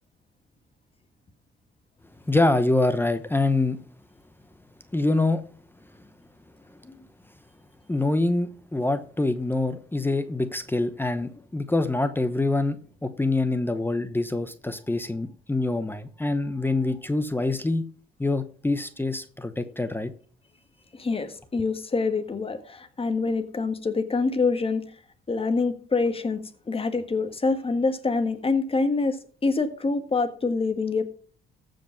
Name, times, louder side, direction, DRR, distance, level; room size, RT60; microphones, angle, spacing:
voice 1, 2.3-3.8 4.9-5.4 6.0-6.1 6.7-6.8 7.9-17.9 18.2-20.1, left 2 dB, 10° left, 0.9 m, -25 dB
voice 2, 20.9-24.8 25.3-31.0, left 4 dB, 30° left, 1.7 m, -26 dB
15.0 x 5.3 x 5.9 m
cardioid pair, 90°, 20 cm